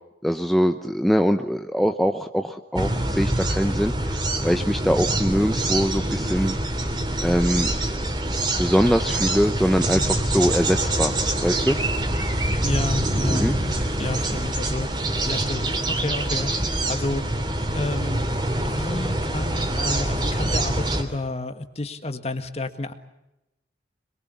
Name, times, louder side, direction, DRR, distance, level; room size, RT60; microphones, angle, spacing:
voice 1, 0.2-6.6 7.2-7.7 8.6-11.1 11.4-11.8 13.3-13.5, equal, ahead, 6 dB, 0.8 m, -23 dB
sound 1, 2.8-21.0, right 1 dB, 25° right, 3.1 m, -25 dB
voice 2, 12.6-13.5 14.0-17.2 17.7-18.2 18.6-22.9, left 2 dB, 35° left, 9 dB, 1.8 m, -30 dB
26.5 x 22.5 x 7.1 m, 0.91 s
head